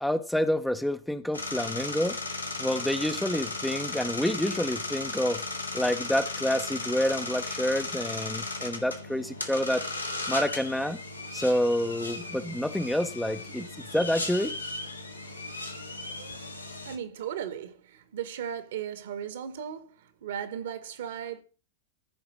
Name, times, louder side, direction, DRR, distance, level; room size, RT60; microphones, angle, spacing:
voice 1, 0.0-2.2 2.6-5.4 5.7-9.9 10.3-11.0 11.3-14.6, left 1 dB, ahead, 0.7 m, -28 dB
sound 1, 1.3-17.0, left 2 dB, 85° left, 1.6 m, -36 dB
voice 2, 16.8-21.4, right 9 dB, 60° right, 1.5 m, -36 dB
14.5 x 5.1 x 6.2 m
figure-of-eight pair, 90°, 0 cm